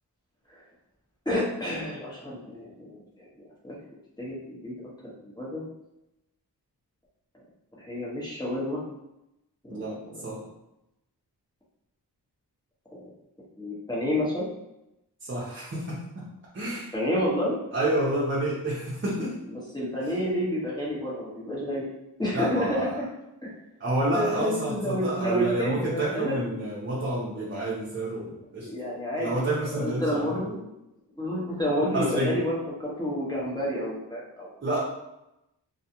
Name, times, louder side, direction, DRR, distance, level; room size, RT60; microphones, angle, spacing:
voice 1, 1.2-3.3 3.6-3.8 4.2-4.7 5.2-5.6 7.8-8.8 9.7-10.4 12.9-13.1 13.6-14.5 16.9-17.6 19.2-21.9 22.2-22.8 23.4-23.5 24.1-26.4 28.5-30.7 31.2-34.5, equal, 10° left, -6 dB, 1.0 m, -30 dB
voice 2, 9.7-10.5 15.2-16.9 17.7-19.4 20.0-20.1 22.3-23.0 23.8-28.7 29.2-30.4 31.9-32.3 34.6-34.8, right 1 dB, 30° right, -6 dB, 0.6 m, -29 dB
2.3 x 2.2 x 2.8 m, 0.89 s
cardioid pair, 55°, 42 cm